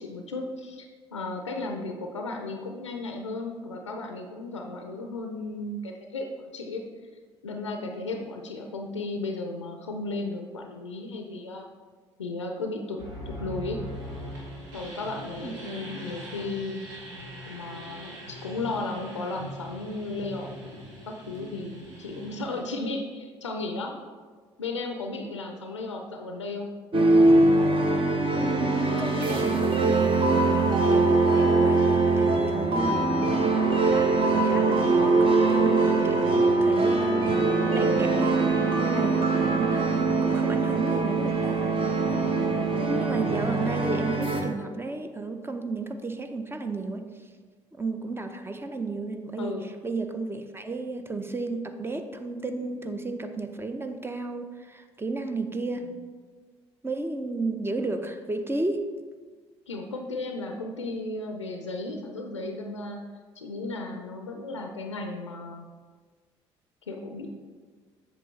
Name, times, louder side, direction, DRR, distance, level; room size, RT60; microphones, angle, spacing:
voice 1, 0.0-6.3 6.5-6.8 7.4-11.7 12.2-13.0 13.3-13.8 14.7-16.8 17.5-20.8 21.1-24.0 24.6-26.7 42.1-42.6 49.4-49.6 59.7-63.0 63.4-65.7 66.9-67.3, left 2 dB, 90° left, 4 dB, 0.5 m, -35 dB
sound 1, 13.0-22.6, equal, 80° right, 1.6 m, -41 dB
voice 2, 15.4-16.1 28.3-30.4 30.9-41.6 42.1-42.3 42.8-47.1 47.7-56.0 56.8-59.0, right 3 dB, 15° right, 7 dB, 0.7 m, -33 dB
sound 2, 26.9-44.4, right 3 dB, 35° right, 1.1 m, -22 dB
7.7 x 6.4 x 3.2 m, 1.5 s
figure-of-eight pair, 50°, 15 cm